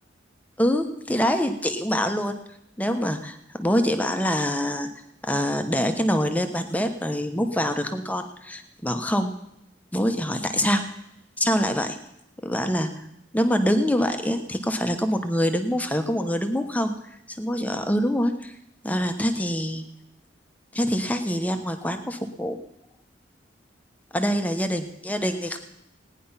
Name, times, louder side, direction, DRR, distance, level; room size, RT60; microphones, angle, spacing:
voice 1, 0.6-2.4 2.8-4.9 5.2-9.3 9.9-10.9 11.4-12.0 12.4-13.1 13.3-16.9 17.3-18.5 18.8-19.8 20.7-22.6 24.1-25.6, equal, 10° left, 7 dB, 1.1 m, -25 dB
17.5 x 10.0 x 5.7 m, 0.81 s
head